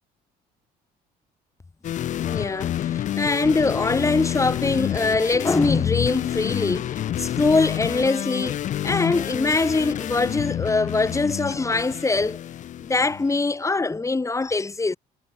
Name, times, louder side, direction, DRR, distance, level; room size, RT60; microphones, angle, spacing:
sound 1, 1.8-13.4, left 11 dB, 50° left, 0.5 m, -28 dB
sound 2, 2.2-8.8 9.6-10.0, left 13 dB, 70° left, 6.1 m, -50 dB
voice 1, 2.2-8.6 8.8-12.4 12.8-15.0, left 3 dB, 20° left, 2.5 m, -23 dB
cardioid pair, 110°, 17 cm